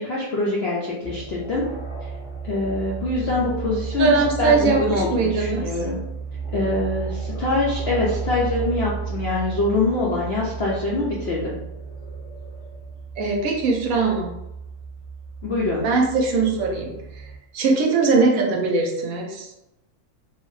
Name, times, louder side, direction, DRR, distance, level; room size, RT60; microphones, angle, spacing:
voice 1, 0.0-1.6 2.4-4.1 4.4-6.0 6.5-11.6 15.4-15.9, left 2 dB, 70° left, -5 dB, 0.6 m, -24 dB
sound 1, 1.0-17.4, right 5 dB, 20° right, 0.5 m, -33 dB
voice 2, 4.0-5.7 13.2-14.3 15.8-19.5, right 4 dB, 70° right, 1 dB, 1.0 m, -21 dB
2.8 x 2.0 x 3.1 m, 0.89 s
omnidirectional pair, 1.6 m